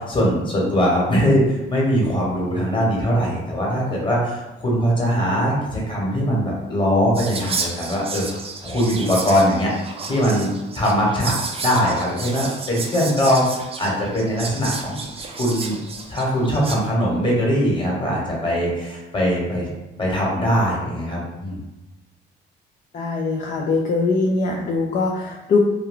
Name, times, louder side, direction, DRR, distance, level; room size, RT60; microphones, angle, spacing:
voice 1, 0.0-8.2 8.6-9.7 10.1-11.3 11.6-15.0 15.3-15.8 16.1-19.7 20.0-21.6, equal, 25° left, -4 dB, 1.2 m, -21 dB
Whispering, 7.1-16.8, right 4 dB, 30° right, 0.4 m, -32 dB
voice 2, 22.9-25.6, left 3 dB, 40° left, 0 dB, 0.4 m, -22 dB
2.3 x 2.2 x 3.6 m, 1.0 s
cardioid pair, 90°, 20 cm